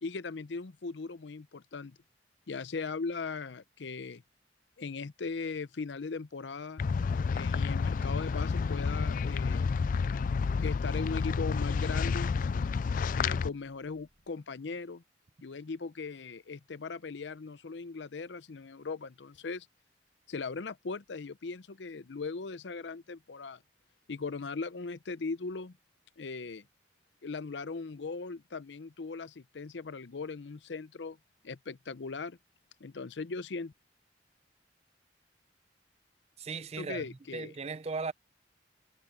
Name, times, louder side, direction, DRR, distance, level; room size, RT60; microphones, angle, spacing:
voice 1, 0.0-2.0 2.5-4.2 4.8-6.8 7.3-9.7 10.6-12.3 13.1-15.0 15.4-19.7 20.3-23.6 24.1-25.8 26.2-26.7 27.2-31.2 31.4-32.4 32.8-33.7 36.8-37.5, left 4 dB, 80° left, 0.6 m, -39 dB
sound 1, 6.8-13.5, left 5 dB, 50° left, 0.3 m, -30 dB
sound 2, 13.8-14.3, equal, 55° right, 5.3 m, -59 dB
voice 2, 36.4-38.1, right 4 dB, 35° right, 0.5 m, -37 dB
head